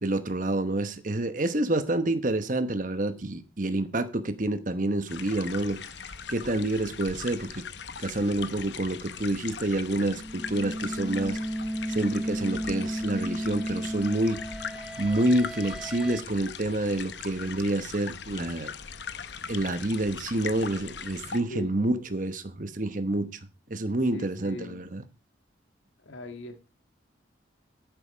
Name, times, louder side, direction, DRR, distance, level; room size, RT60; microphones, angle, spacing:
voice 1, 0.0-5.8 6.3-7.6 8.0-11.4 11.9-14.4 15.0-18.7 19.5-23.3 23.7-25.0, right 1 dB, 45° right, 1.1 m, -28 dB
sound 1, 5.1-21.4, left 6 dB, 65° left, 0.9 m, -40 dB
sound 2, 9.9-16.2, equal, 5° right, 0.5 m, -34 dB
voice 2, 24.1-24.8 26.0-26.7, left 1 dB, 90° left, 2.0 m, -39 dB
11.0 x 8.5 x 5.1 m
head